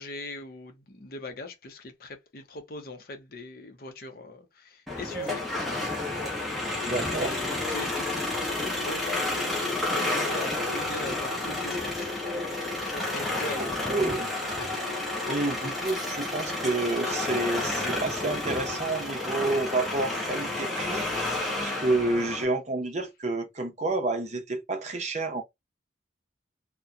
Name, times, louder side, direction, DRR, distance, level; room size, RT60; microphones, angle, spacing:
voice 1, 0.0-5.4 7.1-12.1 12.9-14.0, left 2 dB, 50° left, 0.6 m, -41 dB
sound 1, 4.9-22.4, left 2 dB, ahead, 0.7 m, -30 dB
voice 2, 6.8-7.3 13.6-14.3 15.3-21.1 21.6-25.4, right 2 dB, 35° right, 0.6 m, -29 dB
2.7 x 2.1 x 2.3 m
head